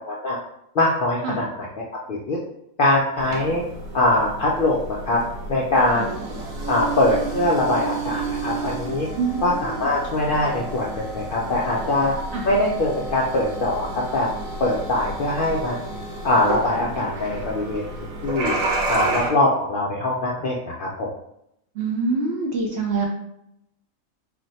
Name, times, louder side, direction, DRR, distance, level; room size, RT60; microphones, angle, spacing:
voice 1, 0.7-2.4 2.8-3.6 3.9-4.8 5.1-5.2 5.5-6.1 6.7-9.1 9.4-12.1 12.5-14.3 14.6-15.7 16.2-17.8 18.2-18.5 18.9-21.1, left 2 dB, 70° left, -4 dB, 0.5 m, -22 dB
sound 1, 3.2-19.3, right 2 dB, 80° right, 1.1 m, -31 dB
voice 2, 9.2-9.9 12.3-12.5 21.8-23.1, right 4 dB, 60° right, -1 dB, 0.7 m, -25 dB
2.5 x 2.1 x 4.0 m, 0.77 s
omnidirectional pair, 1.4 m